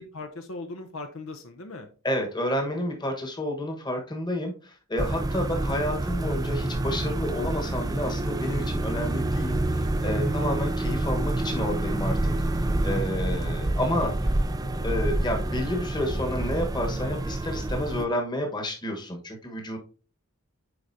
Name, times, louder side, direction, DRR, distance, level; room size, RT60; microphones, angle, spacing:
voice 1, 0.0-1.9 10.2-10.5 13.3-13.6 13.9-14.4, left 3 dB, 60° left, 6 dB, 0.7 m, -39 dB
voice 2, 2.0-14.1 14.8-19.8, left 1 dB, 20° left, 3 dB, 1.2 m, -30 dB
sound 1, 5.0-18.1, right 1 dB, 15° right, 0.4 m, -28 dB
7.8 x 5.0 x 2.7 m, 0.37 s
head